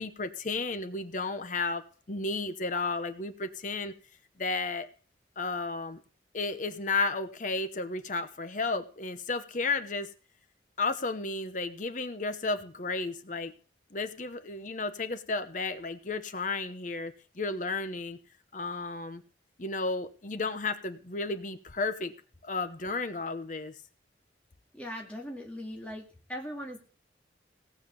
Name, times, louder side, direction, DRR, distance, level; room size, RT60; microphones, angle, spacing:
voice 1, 0.0-1.8 2.1-3.9 4.4-4.9 5.4-6.0 6.3-10.1 10.8-13.5 13.9-18.2 18.5-19.2 19.6-22.1 22.4-23.8, left 3 dB, 45° left, 9 dB, 1.0 m, -33 dB
voice 2, 24.7-26.8, equal, 5° left, -1 dB, 2.3 m, -40 dB
17.5 x 7.4 x 7.0 m, 0.40 s
head